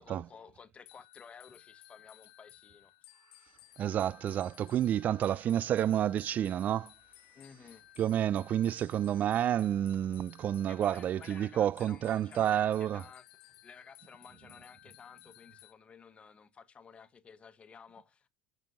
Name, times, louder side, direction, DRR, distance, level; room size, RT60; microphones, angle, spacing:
voice 1, 0.0-2.9 7.3-7.8 10.7-18.3, left 6 dB, 30° left, 1.2 m, -54 dB
sound 1, 0.9-15.7, left 16 dB, 65° left, 1.3 m, -58 dB
voice 2, 3.8-6.9 8.0-13.0, right 10 dB, 40° right, 0.4 m, -29 dB
15.0 x 5.1 x 2.7 m
hypercardioid pair, 75°, 4 cm